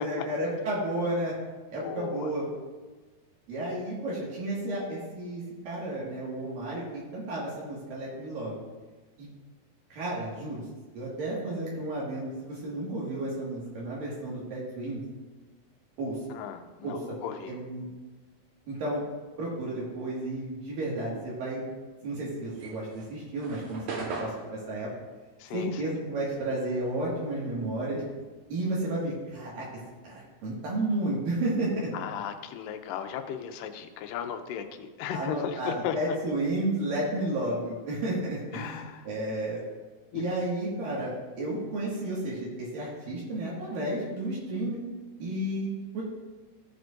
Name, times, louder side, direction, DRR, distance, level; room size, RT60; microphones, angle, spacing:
voice 1, 0.0-1.4 1.7-2.5 3.5-8.5 9.2-9.3 9.9-10.6 10.9-15.0 16.0-16.2 16.8-17.0 17.5-17.9 18.7-19.0 19.4-21.7 22.0-24.9 25.5-28.0 28.5-29.7 30.0-31.9 35.1-39.6 40.1-44.8 45.2-46.0, right 1 dB, 75° right, -6 dB, 3.6 m, -32 dB
voice 2, 1.8-2.3 16.3-17.6 25.4-26.0 31.9-36.2 38.5-39.1 40.1-40.2, left 8 dB, 80° left, 7 dB, 2.3 m, -36 dB
sound 1, 22.5-27.2 27.5-29.5, right 3 dB, 60° right, 2.2 m, -40 dB
15.0 x 8.0 x 2.6 m, 1.3 s
omnidirectional pair, 4.0 m